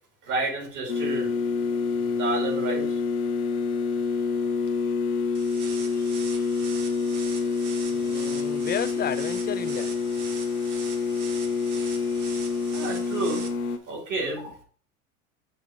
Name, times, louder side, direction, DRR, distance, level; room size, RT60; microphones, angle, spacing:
voice 1, 0.2-1.3 2.0-3.0 12.7-13.5 13.9-14.6, right 2 dB, 45° right, -1 dB, 4.3 m, -30 dB
sound 1, 0.9-13.8, left 4 dB, 85° left, 1.0 m, -27 dB
sound 2, 5.3-13.5, right 5 dB, 80° right, 1.4 m, -41 dB
voice 2, 5.7-6.5 7.9-9.9, left 9 dB, 20° left, 10 dB, 0.6 m, -34 dB
7.7 x 3.5 x 5.8 m, 0.43 s
hypercardioid pair, 85°, 43 cm